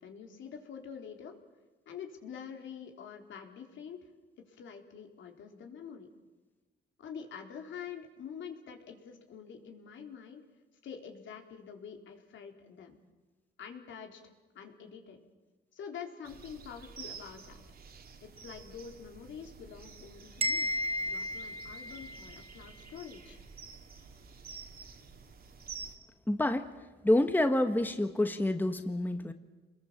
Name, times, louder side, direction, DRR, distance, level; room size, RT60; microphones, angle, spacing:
voice 1, 0.0-1.4 1.9-4.1 4.4-6.1 7.0-10.4 10.8-13.0 13.6-14.2 14.5-15.2 15.7-17.6 18.2-20.7 21.0-23.4, left 7 dB, 75° left, 3 dB, 3.9 m, -46 dB
sound 1, 16.2-26.0, right 5 dB, 50° right, 2.7 m, -50 dB
sound 2, 20.4-22.4, equal, 30° right, 3.1 m, -33 dB
voice 2, 26.3-26.7 27.0-29.3, left 1 dB, 10° left, 8 dB, 1.6 m, -28 dB
29.0 x 21.5 x 7.5 m, 1.2 s
cardioid pair, 90°, 20 cm